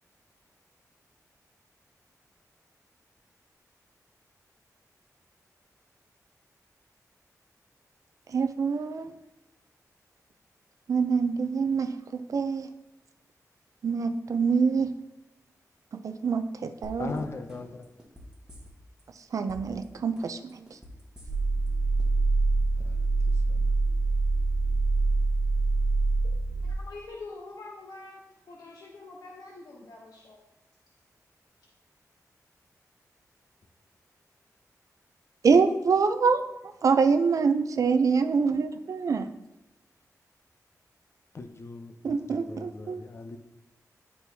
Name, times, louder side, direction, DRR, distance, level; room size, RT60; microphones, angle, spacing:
voice 1, 8.3-9.1 10.9-12.7 13.8-14.9 15.9-17.1 19.3-20.7 35.4-36.4 36.8-39.3 42.0-43.0, right 5 dB, 60° right, 8 dB, 0.4 m, -25 dB
sound 1, 16.8-17.2 17.5-19.0 19.3-19.8 20.2-21.7 22.0-22.1, equal, 10° right, 1.2 m, -46 dB
voice 2, 17.0-17.9 22.8-23.7 41.3-43.4, left 3 dB, 45° left, 6 dB, 0.5 m, -40 dB
sound 2, 21.3-26.7, right 3 dB, 5° left, 1.2 m, -25 dB
voice 3, 26.6-28.2 28.5-30.4, left 3 dB, 80° left, -2 dB, 0.9 m, -44 dB
10.5 x 4.5 x 2.7 m, 0.94 s
wide cardioid pair, 150°, 6 cm